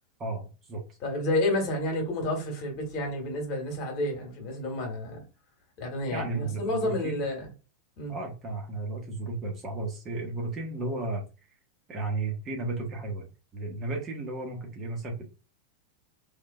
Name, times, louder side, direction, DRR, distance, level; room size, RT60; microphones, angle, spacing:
voice 1, 0.2-0.8 6.1-7.2 8.1-11.2 11.9-15.4, right 2 dB, 25° right, 1.3 m, -34 dB
voice 2, 1.0-5.2 5.8-7.5 8.0-8.1, left 1 dB, 40° left, 1.7 m, -30 dB
3.6 x 3.2 x 2.3 m
figure-of-eight pair, 90°, 0 cm